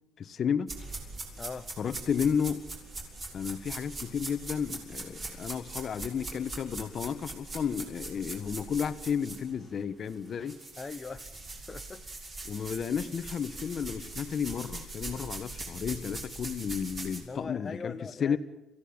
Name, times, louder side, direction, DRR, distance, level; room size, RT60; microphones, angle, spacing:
voice 1, 0.2-0.7 1.8-2.6 3.3-10.6 12.4-18.4, left 7 dB, 40° left, 1.2 m, -32 dB
sound 1, 0.7-9.8 10.1-17.2, right 2 dB, 30° right, 6.3 m, -41 dB
voice 2, 1.4-1.7 10.8-11.3 11.7-12.0 17.2-18.4, left 4 dB, 20° left, 0.9 m, -40 dB
28.0 x 16.0 x 8.8 m
cardioid pair, 150°, 0 cm